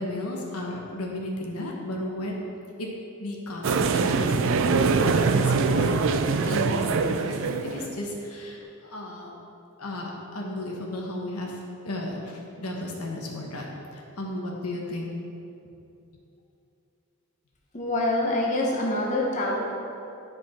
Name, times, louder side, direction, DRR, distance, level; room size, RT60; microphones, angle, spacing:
voice 1, 0.0-2.4 2.8-2.9 3.2-9.3 9.8-11.6 11.8-13.6 13.9-15.2, left 1 dB, 80° left, -1 dB, 1.3 m, -34 dB
sound 1, 3.6-8.0, right 4 dB, 60° right, 0.4 m, -23 dB
voice 2, 17.7-19.6, left 1 dB, 35° left, -2 dB, 0.9 m, -25 dB
10.0 x 5.3 x 4.3 m, 2.7 s
head